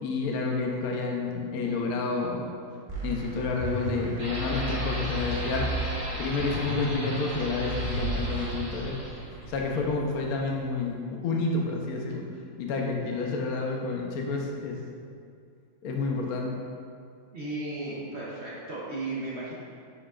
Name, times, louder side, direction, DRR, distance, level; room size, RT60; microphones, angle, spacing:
voice 1, 0.0-2.5 3.0-5.9 6.2-9.0 9.5-12.2 12.6-14.8 15.8-16.5, left 3 dB, 65° left, 0 dB, 1.0 m, -29 dB
sound 1, 2.9-8.5, right 1 dB, 20° right, 0.8 m, -34 dB
sound 2, 4.2-10.8, right 1 dB, 65° right, 2.2 m, -37 dB
voice 2, 17.3-19.5, right 2 dB, 50° right, -6 dB, 0.8 m, -35 dB
9.9 x 5.2 x 2.4 m, 2.4 s
omnidirectional pair, 2.1 m